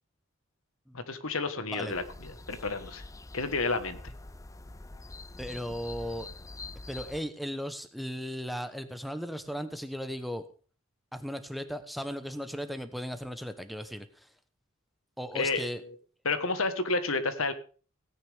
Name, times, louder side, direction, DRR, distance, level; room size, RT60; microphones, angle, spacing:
voice 1, 0.9-3.0 3.3-4.1 15.3-15.7 16.2-17.5, left 3 dB, 80° left, 10 dB, 1.5 m, -30 dB
sound 1, 1.9-7.2, left 2 dB, 15° left, 0.5 m, -45 dB
voice 2, 5.4-6.3 6.9-10.4 11.1-14.3 15.2-15.8, equal, ahead, 9 dB, 1.0 m, -36 dB
17.0 x 9.9 x 3.6 m, 0.38 s
head